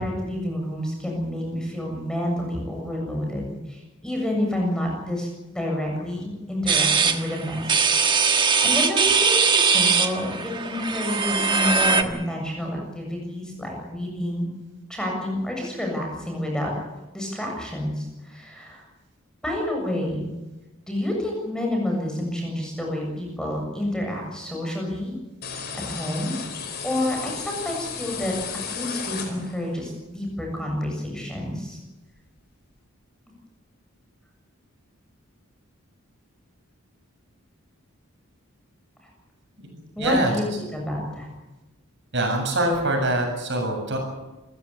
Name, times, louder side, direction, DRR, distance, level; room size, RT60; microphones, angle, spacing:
voice 1, 0.0-7.8 8.3-14.5 14.9-16.7 17.1-18.9 19.4-20.3 20.9-25.2 25.7-26.4 26.8-28.4 28.7-31.8 40.0-41.3, left 1 dB, 5° left, 0 dB, 7.3 m, -29 dB
sound 1, 6.7-12.0, right 5 dB, 20° right, 1.5 m, -21 dB
sound 2, 25.4-29.8, left 6 dB, 45° left, 4.7 m, -34 dB
voice 2, 40.0-40.3 42.1-44.0, right 1 dB, 55° right, 3 dB, 7.3 m, -24 dB
28.0 x 15.5 x 8.5 m, 1.1 s
head